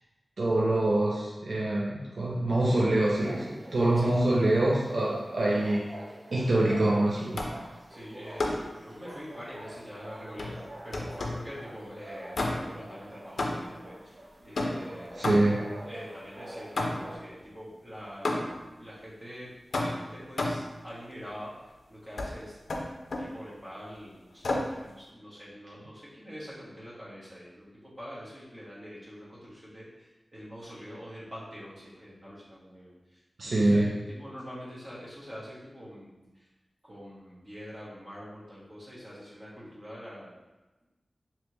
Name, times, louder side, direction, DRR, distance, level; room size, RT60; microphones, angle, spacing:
voice 1, 0.4-5.8 6.3-7.4 15.2-15.6 33.4-33.9, right 1 dB, 80° right, -4 dB, 0.4 m, -25 dB
sound 1, 2.9-17.2, right 1 dB, 55° right, 0.8 m, -46 dB
sound 2, 7.3-7.7 8.4-8.8 10.4-11.5 12.3-12.9 13.4-13.8 14.5-15.7 16.8-17.2 18.2-18.7 19.7-20.7 22.2-22.3 22.7-23.3 24.4-24.8, left 2 dB, 85° left, 0.4 m, -31 dB
voice 2, 7.9-8.5 8.8-15.5 15.8-22.6 23.2-33.9 34.2-36.5 36.8-40.3, equal, 35° right, -8 dB, 1.3 m, -45 dB
3.4 x 2.8 x 3.0 m, 1.1 s
wide cardioid pair, 75°, 0 cm